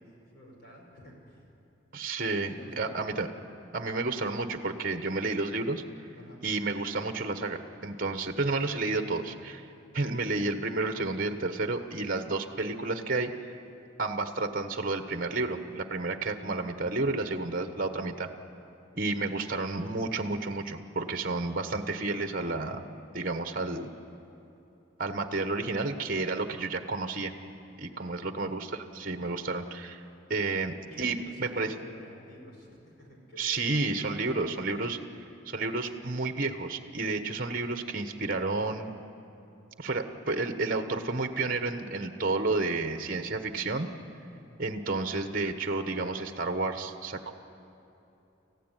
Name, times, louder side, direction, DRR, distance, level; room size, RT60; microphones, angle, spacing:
voice 1, 0.0-1.5 2.5-3.0 6.1-6.4 18.9-19.1 27.7-28.4 30.6-34.3 44.2-44.4, equal, 50° left, 0 dB, 5.5 m, -51 dB
voice 2, 1.9-3.3 3.7-5.8 6.4-9.7 9.9-13.5 14.0-18.3 18.9-22.8 23.1-23.9 25.0-27.3 27.8-30.0 30.3-31.7 33.4-35.0 35.4-38.9 39.8-43.9 44.6-47.3, right 3 dB, 45° right, 7 dB, 1.2 m, -31 dB
29.0 x 15.5 x 9.2 m, 3.0 s
head